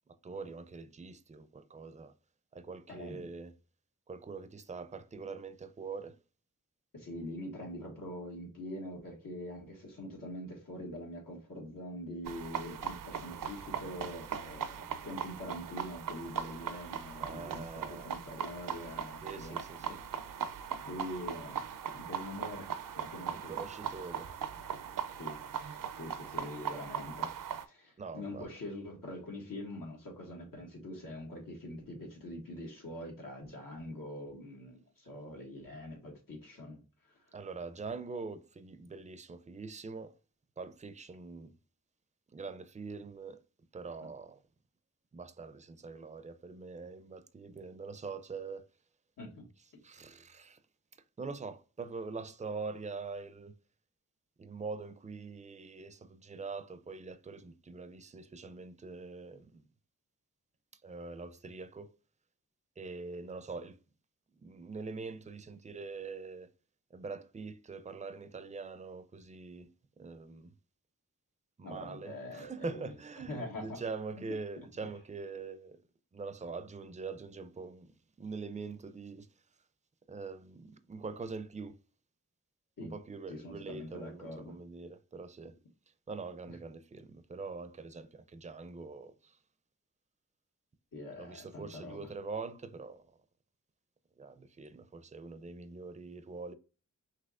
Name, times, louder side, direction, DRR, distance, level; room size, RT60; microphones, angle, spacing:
voice 1, 0.1-2.1 2.5-3.5 4.1-6.2 17.2-18.1 19.2-20.0 23.3-24.3 28.0-28.5 37.3-40.2 40.6-41.6 42.3-43.4 43.7-44.4 45.1-48.7 49.8-50.6 51.2-53.5 54.4-59.6 60.8-61.9 62.8-63.8 64.4-66.5 66.9-69.7 70.0-70.5 71.6-75.8 76.1-79.3 80.1-81.8 82.8-85.6 86.1-89.4 91.2-93.1 94.2-96.6, right 4 dB, 20° right, 0.4 m, -43 dB
voice 2, 2.9-3.3 6.9-19.6 19.9-20.2 20.8-22.7 23.0-23.6 25.2-27.4 27.6-36.8 37.1-37.2 49.2-49.4 71.6-72.9 73.3-73.8 74.1-74.3 74.6-74.7 82.8-82.9 83.3-84.6 86.5-86.6 90.9-92.1, left 1 dB, 80° left, 1.6 m, -44 dB
sound 1, 12.2-27.6, right 8 dB, 75° right, 0.5 m, -39 dB
5.7 x 2.9 x 2.4 m
wide cardioid pair, 85°, 33 cm